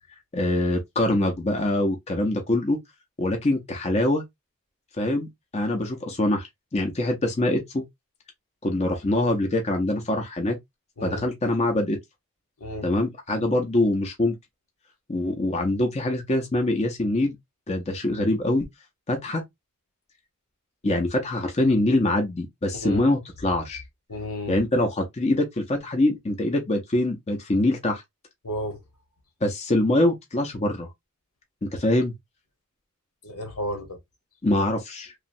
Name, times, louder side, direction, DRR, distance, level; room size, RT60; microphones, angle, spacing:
voice 1, 0.3-2.8 3.2-4.2 5.0-5.3 5.5-7.8 8.6-10.6 11.0-12.0 12.8-14.4 15.1-17.4 17.7-18.6 19.1-19.4 20.8-23.8 24.5-28.0 29.4-30.9 31.6-32.1 34.4-35.1, left 1 dB, 30° left, 0.6 m, -24 dB
voice 2, 11.0-11.3 12.6-12.9 22.7-23.1 24.1-24.6 28.4-28.8 33.2-34.0, left 1 dB, 80° left, 1.1 m, -33 dB
3.0 x 2.3 x 2.5 m
head